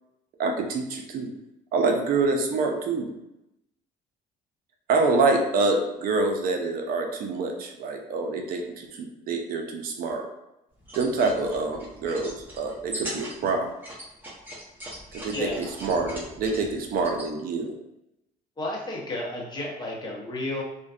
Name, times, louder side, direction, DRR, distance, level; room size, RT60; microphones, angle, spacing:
voice 1, 0.4-1.3 1.7-3.1 4.9-10.3 10.9-13.7 15.1-17.7, right 3 dB, 60° right, 3 dB, 0.4 m, -26 dB
sound 1, 10.8-17.3, right 1 dB, 10° right, 0.7 m, -40 dB
voice 2, 15.3-15.7 18.6-20.6, left 1 dB, 25° left, -3 dB, 0.6 m, -32 dB
2.5 x 2.1 x 2.3 m, 0.88 s
cardioid pair, 110°, 17 cm